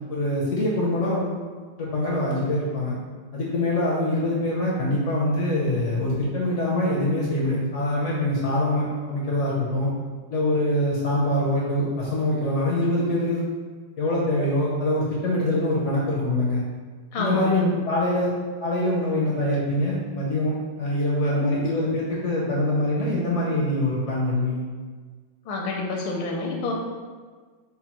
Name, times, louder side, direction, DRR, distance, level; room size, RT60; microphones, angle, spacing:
voice 1, 0.1-1.4 1.8-2.9 3.3-9.9 10.3-13.4 14.0-16.6 17.2-18.3 18.6-24.6, left 1 dB, 60° left, -5 dB, 0.7 m, -24 dB
voice 2, 17.1-17.8 25.4-26.7, left 3 dB, 80° left, 0 dB, 1.5 m, -28 dB
5.5 x 2.2 x 4.2 m, 1.5 s
omnidirectional pair, 2.2 m